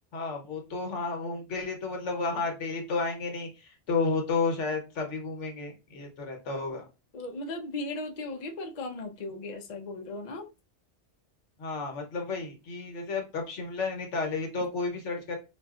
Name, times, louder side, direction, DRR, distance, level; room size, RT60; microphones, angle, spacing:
voice 1, 0.1-6.8 11.6-15.4, left 4 dB, 85° left, 1.3 m, -32 dB
voice 2, 7.1-10.5, left 2 dB, 45° left, 0.7 m, -37 dB
5.6 x 2.4 x 2.4 m
omnidirectional pair, 1.2 m